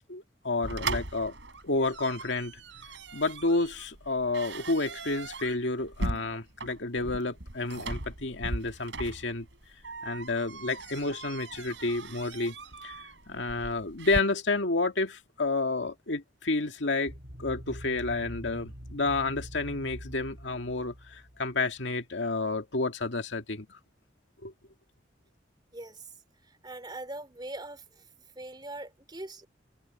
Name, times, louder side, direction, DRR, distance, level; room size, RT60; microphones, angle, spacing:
voice 1, 0.1-1.3 1.6-2.6 3.1-9.5 10.0-12.6 12.8-13.0 13.3-17.1 17.4-23.8 24.4-24.5, left 3 dB, 85° left, 2.0 m, -30 dB
sound 1, 0.6-14.2, right 2 dB, 85° right, 5.1 m, -39 dB
sound 2, 17.1-21.7, equal, 55° right, 4.3 m, -44 dB
voice 2, 25.7-26.1 26.6-27.8 28.3-29.5, right 2 dB, 25° right, 3.3 m, -41 dB
head